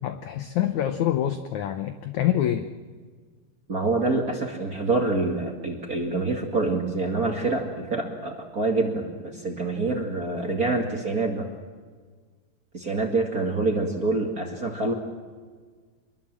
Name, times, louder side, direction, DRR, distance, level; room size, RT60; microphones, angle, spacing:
voice 1, 0.0-2.6, left 11 dB, 85° left, 8 dB, 1.6 m, -26 dB
voice 2, 3.7-11.5 12.7-14.9, right 3 dB, 30° right, 2 dB, 1.8 m, -26 dB
26.0 x 22.0 x 7.6 m, 1.5 s
omnidirectional pair, 4.7 m